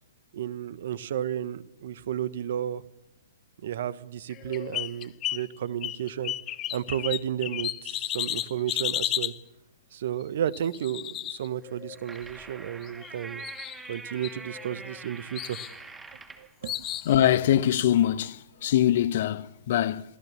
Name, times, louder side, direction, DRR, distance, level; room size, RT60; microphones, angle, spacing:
voice 1, 0.3-2.8 3.6-6.3 6.7-9.3 9.9-13.4 13.9-15.6 16.4-16.7, right 10 dB, 55° right, 1.3 m, -32 dB
sound 1, 4.3-5.5 5.8-9.4 10.5-12.0 12.8-13.1 13.4-14.0 14.2-15.0 15.4-15.7 16.7-17.1, left 13 dB, 25° left, 0.9 m, -33 dB
sound 2, 11.7-16.5, right 3 dB, 10° right, 2.3 m, -44 dB
voice 2, 17.0-20.0, left 11 dB, 50° left, 1.2 m, -23 dB
27.5 x 16.5 x 7.3 m
figure-of-eight pair, 120°, 0 cm